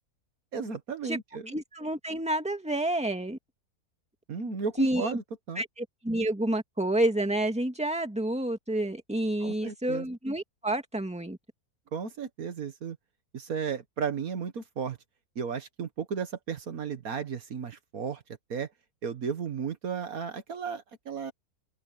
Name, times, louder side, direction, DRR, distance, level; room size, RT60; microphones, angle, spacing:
voice 1, 0.5-1.6 4.3-5.6 9.4-10.1 11.9-13.0 13.3-15.0 15.4-18.2 18.5-18.7 19.0-21.3, right 6 dB, 70° right, 1.8 m, -34 dB
voice 2, 1.5-3.4 4.8-5.2 5.6-11.4, right 1 dB, 5° right, 2.3 m, -29 dB
open air
omnidirectional pair, 1.6 m